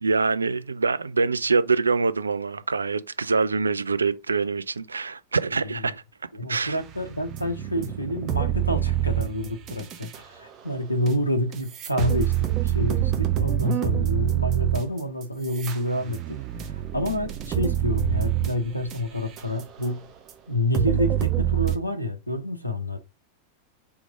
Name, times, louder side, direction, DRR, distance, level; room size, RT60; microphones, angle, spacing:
voice 1, 0.0-6.0 6.5-6.8, right 4 dB, 75° right, 0.3 m, -24 dB
voice 2, 5.6-5.9 6.3-12.4 12.6-20.1 20.5-23.0, left 1 dB, 85° left, 0.7 m, -28 dB
sound 1, 6.9-10.2 11.1-11.2 11.5-19.9 20.3-20.4 20.7-21.8, right 12 dB, 35° right, 0.7 m, -26 dB
3.5 x 3.1 x 4.9 m
figure-of-eight pair, 90°, 0 cm